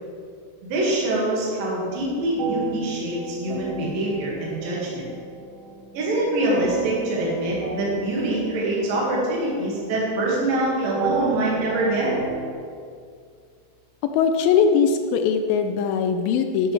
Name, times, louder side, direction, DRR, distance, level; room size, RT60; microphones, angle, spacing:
voice 1, 0.6-5.0 5.9-12.1, right 1 dB, 65° right, -5 dB, 3.5 m, -24 dB
sound 1, 2.4-12.5, right 5 dB, 50° right, 2.0 m, -34 dB
voice 2, 14.1-16.7, left 6 dB, 80° left, 6 dB, 2.2 m, -20 dB
11.5 x 11.0 x 3.2 m, 2.2 s
omnidirectional pair, 4.3 m